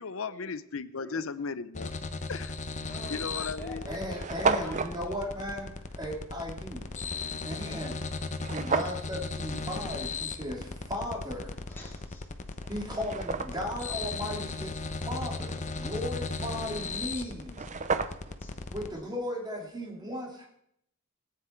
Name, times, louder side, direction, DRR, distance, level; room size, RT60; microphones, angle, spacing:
voice 1, 0.0-1.9 2.3-2.5 3.1-3.9, left 5 dB, 75° left, 15 dB, 0.7 m, -36 dB
voice 2, 0.9-1.3 2.8-4.2 4.6-5.3 7.6-7.9 9.5-9.6 11.7-12.6 17.1-17.3 18.1-18.7, right 1 dB, 10° left, -4 dB, 3.2 m, -48 dB
sound 1, 1.7-18.9, left 3 dB, 35° left, 0.9 m, -37 dB
sound 2, 2.6-2.8 3.5-3.6 3.8-3.9 4.1-5.0 8.4-9.1 12.0-12.1 12.6-13.8 17.1-17.2 17.4-18.4, right 4 dB, 35° right, 0.6 m, -31 dB
voice 3, 3.9-6.9 7.4-8.0 8.5-11.6 12.7-17.6 18.7-20.4, left 1 dB, 20° right, -1 dB, 2.8 m, -36 dB
17.5 x 9.6 x 4.5 m, 0.73 s
head